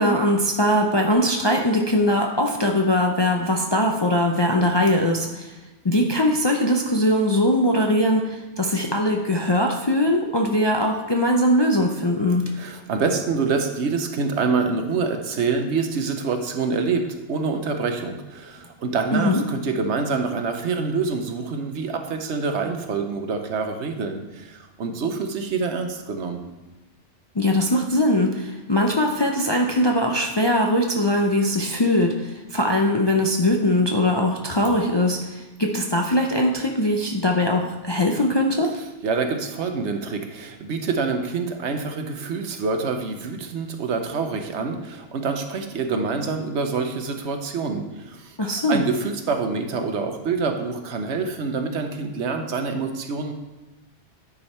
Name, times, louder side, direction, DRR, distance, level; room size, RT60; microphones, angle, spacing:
voice 1, 0.0-5.5 5.8-12.4 19.1-19.4 27.4-38.7 48.4-48.8, left 1 dB, 30° left, 1 dB, 0.5 m, -21 dB
voice 2, 12.5-26.5 39.0-48.4 48.7-53.3, right 4 dB, 70° right, 6 dB, 1.1 m, -26 dB
9.7 x 5.1 x 4.2 m, 1.0 s
omnidirectional pair, 1.2 m